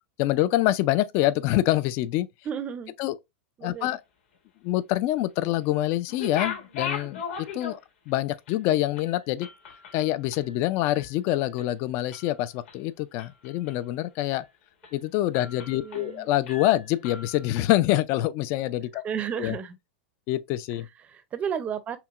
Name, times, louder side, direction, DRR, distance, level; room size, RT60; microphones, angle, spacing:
voice 1, 0.2-2.3 3.0-3.1 3.6-4.0 4.6-7.8 8.1-9.5 9.9-14.4 14.9-19.0 19.4-19.6 20.3-20.9, left 15 dB, 40° left, 0.3 m, -26 dB
voice 2, 2.5-2.9 3.6-3.9 15.7-16.3 19.0-19.8 21.0-22.0, right 8 dB, 20° right, 0.5 m, -32 dB
sound 1, 6.1-8.1 8.5-8.6 9.0-11.1 11.4-11.7 12.1-12.8 13.2-13.9 14.3-14.5 14.8-15.0 15.3-16.2 16.5-17.6, left 7 dB, 65° left, 1.4 m, -38 dB
5.7 x 2.1 x 2.4 m
supercardioid pair, 145°, 6 cm